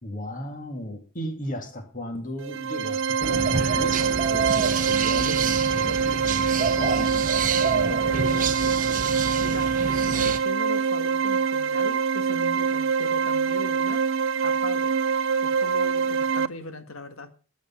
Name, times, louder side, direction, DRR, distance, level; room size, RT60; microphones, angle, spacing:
voice 1, 0.0-8.3, equal, 35° left, 5 dB, 2.3 m, -35 dB
sound 1, 2.4-16.5, right 6 dB, 55° right, 0.5 m, -24 dB
sound 2, 3.2-10.4, right 5 dB, 35° right, 0.8 m, -28 dB
voice 2, 8.1-8.5 9.4-9.7 10.0-14.0 14.4-14.9 15.4-17.3, left 2 dB, 70° left, 8 dB, 1.8 m, -38 dB
14.0 x 8.5 x 5.7 m, 0.38 s
head